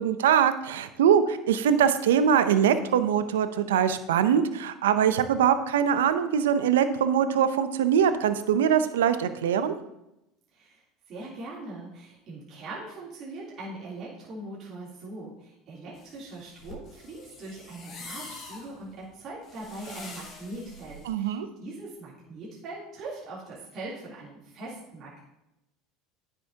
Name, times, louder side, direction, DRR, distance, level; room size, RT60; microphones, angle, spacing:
voice 1, 0.0-9.7 21.1-21.5, right 8 dB, 85° right, 11 dB, 0.5 m, -23 dB
voice 2, 11.1-25.2, right 2 dB, 50° right, -7 dB, 3.1 m, -41 dB
sound 1, 15.9-21.1, left 3 dB, 50° left, 3.1 m, -45 dB
9.7 x 7.0 x 2.8 m, 0.88 s
hypercardioid pair, 90°, 0 cm